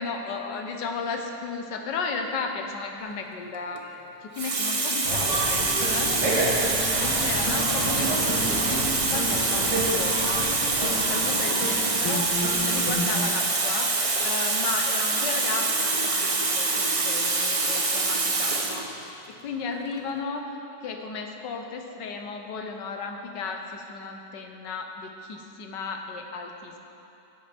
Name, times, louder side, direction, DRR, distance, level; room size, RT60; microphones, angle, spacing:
voice 1, 0.0-6.2 7.0-18.9 19.3-20.5 20.8-26.8, left 4 dB, 80° left, 3 dB, 1.6 m, -34 dB
Water tap faucet, 3.5-3.8 4.4-18.9 19.7-19.9, right 3 dB, 50° right, 0.4 m, -25 dB
sound 1, 5.0-11.9, right 1 dB, 80° right, 2.8 m, -31 dB
sound 2, 5.5-13.2, equal, 15° left, 1.3 m, -34 dB
16.0 x 8.5 x 3.4 m, 2.8 s
omnidirectional pair, 1.9 m